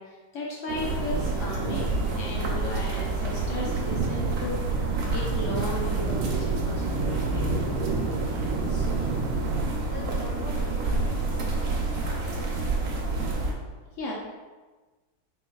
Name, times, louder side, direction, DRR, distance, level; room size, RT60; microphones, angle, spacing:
voice 1, 0.0-7.5 14.0-14.1, left 1 dB, 75° left, -3 dB, 0.7 m, -35 dB
sound 1, 0.7-13.5, right 2 dB, 60° right, 1.1 m, -29 dB
sound 2, 0.7-9.7, right 4 dB, 80° right, 1.3 m, -32 dB
voice 2, 8.7-9.3 9.8-11.4 11.9-12.8, left 2 dB, 45° left, -4 dB, 1.0 m, -44 dB
4.6 x 4.5 x 2.3 m, 1.3 s
omnidirectional pair, 2.1 m